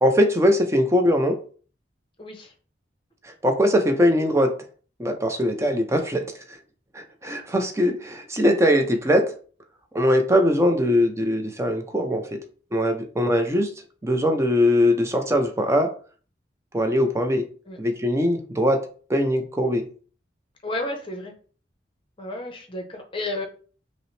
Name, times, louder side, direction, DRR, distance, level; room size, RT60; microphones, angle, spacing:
voice 1, 0.0-1.4 3.2-4.5 5.0-6.3 6.9-9.3 9.9-12.4 12.7-13.7 14.0-15.9 16.7-17.4 17.8-18.8 19.1-19.8, equal, 15° right, 5 dB, 0.5 m, -21 dB
voice 2, 2.2-2.5 17.7-17.8 20.6-21.3 22.2-23.4, left 2 dB, 30° left, 3 dB, 0.7 m, -32 dB
5.4 x 2.1 x 3.2 m, 0.41 s
head